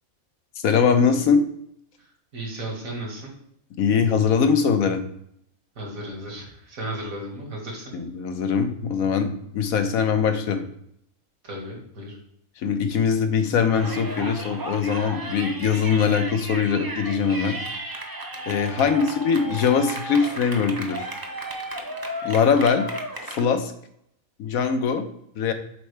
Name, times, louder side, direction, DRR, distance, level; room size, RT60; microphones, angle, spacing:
voice 1, 0.6-1.4 3.8-5.0 7.9-10.6 12.6-17.6 18.5-21.1 22.2-22.9 23.3-23.7 24.4-25.0 25.4-25.5, left 6 dB, 85° left, 7 dB, 1.3 m, -22 dB
voice 2, 2.3-3.3 5.8-7.9 11.4-12.2 18.8-19.0, right 1 dB, 80° right, -1 dB, 2.3 m, -34 dB
Yell, 13.7-23.4, right 1 dB, 20° right, 0.6 m, -34 dB
7.6 x 4.4 x 3.3 m, 0.73 s
omnidirectional pair, 1.4 m